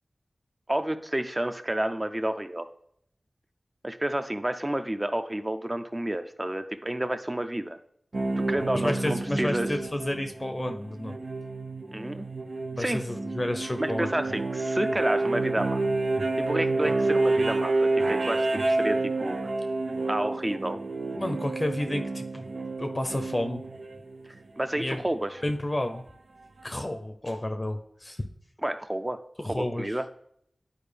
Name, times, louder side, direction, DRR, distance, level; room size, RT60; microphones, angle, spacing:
voice 1, 0.7-2.7 3.8-7.8 8.5-9.7 11.9-12.3 12.8-13.0 13.8-15.8 16.4-19.4 20.1-20.8 24.6-25.4 28.6-29.2 29.4-30.0, right 1 dB, 20° right, 9 dB, 0.6 m, -30 dB
sound 1, 8.1-24.4 25.9-26.0, right 2 dB, 70° right, 0.6 m, -29 dB
voice 2, 8.7-11.2 12.7-14.3 21.1-22.4 22.8-23.7 24.8-25.0 25.4-26.0 26.6-28.3 29.4-30.0, left 1 dB, 25° left, 6 dB, 0.6 m, -31 dB
11.0 x 4.5 x 3.4 m, 0.70 s
wide cardioid pair, 80°, 0 cm